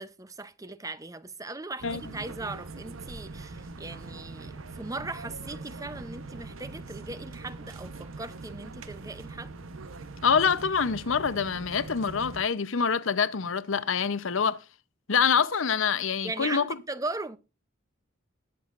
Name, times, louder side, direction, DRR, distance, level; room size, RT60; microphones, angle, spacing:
voice 1, 0.0-9.5 16.2-17.4, right 2 dB, 15° right, 0.6 m, -38 dB
sound 1, 1.8-12.4, right 3 dB, 85° right, 1.0 m, -42 dB
voice 2, 10.2-14.6 15.1-16.8, left 6 dB, 75° left, 0.8 m, -26 dB
19.5 x 7.0 x 2.5 m
head